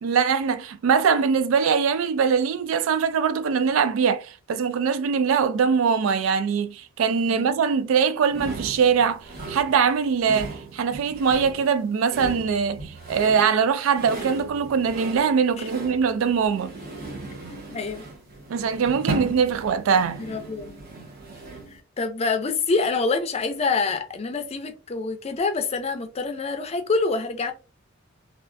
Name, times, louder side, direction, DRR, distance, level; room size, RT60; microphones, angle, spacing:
voice 1, 0.0-16.7 18.5-20.3, right 6 dB, 75° right, 0.3 m, -22 dB
sound 1, 8.3-21.8, right 3 dB, 50° right, 1.0 m, -37 dB
voice 2, 17.7-18.0 20.2-20.7 21.7-27.5, left 4 dB, 30° left, 0.5 m, -26 dB
3.2 x 2.4 x 2.5 m
head